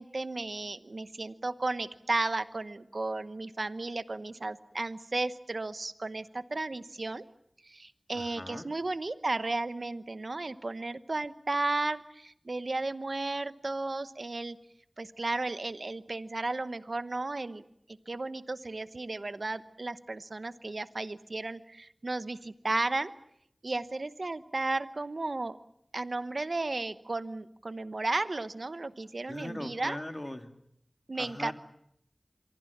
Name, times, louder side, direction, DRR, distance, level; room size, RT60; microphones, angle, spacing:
voice 1, 0.0-7.3 7.6-14.6 15.0-17.6 18.1-23.1 23.6-25.6 25.9-30.0 31.1-31.5, right 2 dB, 70° right, 12 dB, 1.0 m, -34 dB
voice 2, 8.1-8.7 29.3-30.5 31.2-31.5, left 1 dB, 30° left, 5 dB, 2.7 m, -39 dB
26.5 x 24.0 x 7.3 m, 0.75 s
wide cardioid pair, 45°, 0 cm